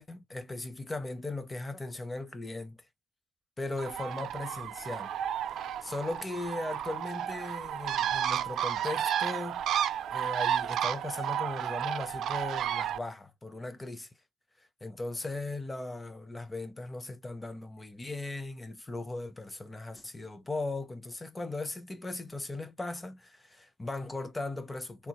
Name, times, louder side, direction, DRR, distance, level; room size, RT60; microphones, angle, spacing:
voice 1, 0.0-2.8 3.6-5.1 5.8-9.6 10.1-14.1 14.8-25.1, left 2 dB, 15° left, 0.7 m, -38 dB
Bird, 3.8-13.0, right 10 dB, 80° right, 0.4 m, -32 dB
3.4 x 2.3 x 2.9 m
cardioid pair, 135°, 0 cm